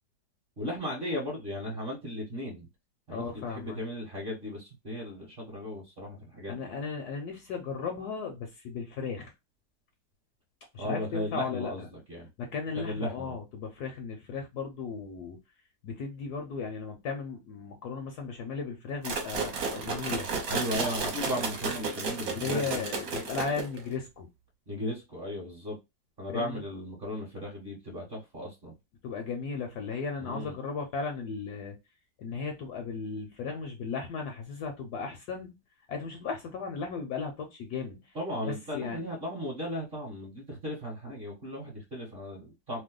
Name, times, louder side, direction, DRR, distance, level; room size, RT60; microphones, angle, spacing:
voice 1, 0.6-2.7 3.1-6.7 10.8-12.3 12.7-13.3 20.5-22.8 24.7-25.8 26.2-28.7 30.2-30.6 38.1-42.8, left 1 dB, 40° right, 1.0 m, -36 dB
voice 2, 3.1-3.8 6.5-9.3 10.7-11.9 12.4-15.4 15.8-20.3 22.4-24.3 26.3-26.7 29.0-31.8 32.2-35.6 35.9-38.1 38.5-39.0, left 5 dB, 70° left, 1.0 m, -36 dB
sound 1, 19.0-23.9, right 4 dB, 60° right, 1.2 m, -33 dB
3.0 x 2.2 x 3.6 m
omnidirectional pair, 2.0 m